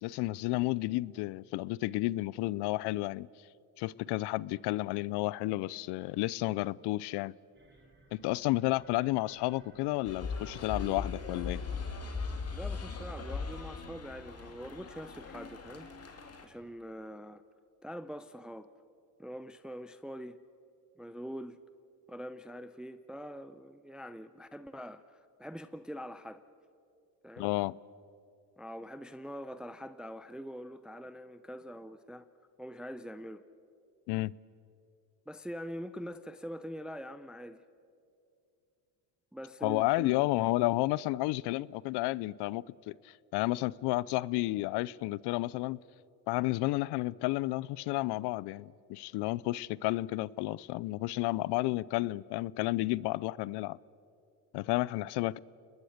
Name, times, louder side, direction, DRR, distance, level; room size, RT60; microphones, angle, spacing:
voice 1, 0.0-3.3 3.8-7.3 8.1-11.6 27.4-27.8 34.1-34.3 39.6-45.8 46.3-53.8 54.5-55.4, left 19 dB, 75° left, 0.6 m, -31 dB
sound 1, 7.5-12.5, right 2 dB, 25° right, 3.7 m, -58 dB
sound 2, 10.0-16.4, left 4 dB, 35° left, 2.8 m, -39 dB
voice 2, 12.5-17.4 17.8-18.7 19.2-20.4 21.0-21.6 22.1-26.4 27.2-27.5 28.6-32.2 32.6-33.4 35.3-37.6 39.3-40.3, equal, ahead, 0.6 m, -44 dB
29.5 x 20.5 x 6.6 m
supercardioid pair, 90°, 41 cm